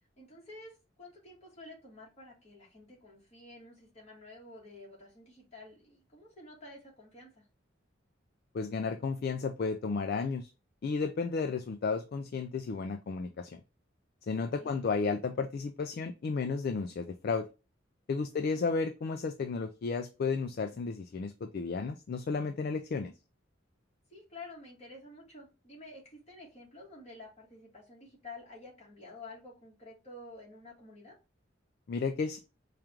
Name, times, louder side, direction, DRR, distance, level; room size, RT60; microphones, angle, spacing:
voice 1, 0.2-7.5 14.3-14.8 18.2-18.8 24.1-31.1, left 2 dB, 35° left, 1.7 m, -51 dB
voice 2, 8.5-10.5 10.8-13.6 14.2-17.5 18.1-23.1 31.9-32.4, left 4 dB, 50° left, 0.3 m, -33 dB
4.9 x 2.4 x 2.9 m
head